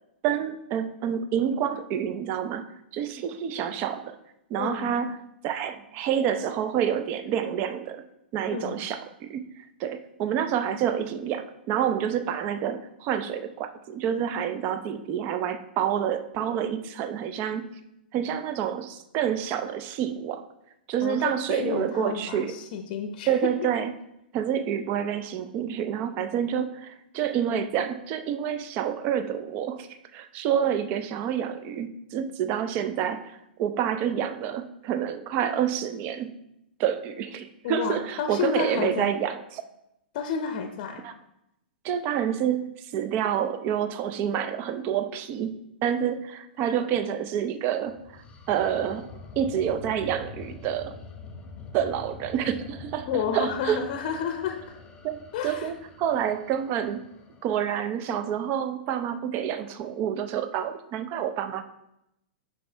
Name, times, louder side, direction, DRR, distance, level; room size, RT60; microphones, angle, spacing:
voice 1, 0.2-2.7 2.9-4.2 4.5-5.1 5.4-8.0 8.3-17.7 18.1-20.5 20.9-22.6 23.3-23.9 24.3-36.3 36.8-39.6 41.0-41.1 41.8-45.5 45.8-49.1 49.4-51.0 51.7-53.8 55.0-57.1 57.4-61.6, right 9 dB, 35° right, 11 dB, 0.5 m, -28 dB
voice 2, 4.6-5.0 8.5-8.8 21.0-23.5 37.6-39.1 40.1-41.0 53.1-54.6 55.3-55.7, left 7 dB, 50° left, 6 dB, 0.6 m, -30 dB
sound 1, 47.9-57.6, left 4 dB, 15° left, 0.9 m, -45 dB
7.5 x 5.7 x 3.4 m, 0.83 s
figure-of-eight pair, 110°, 5 cm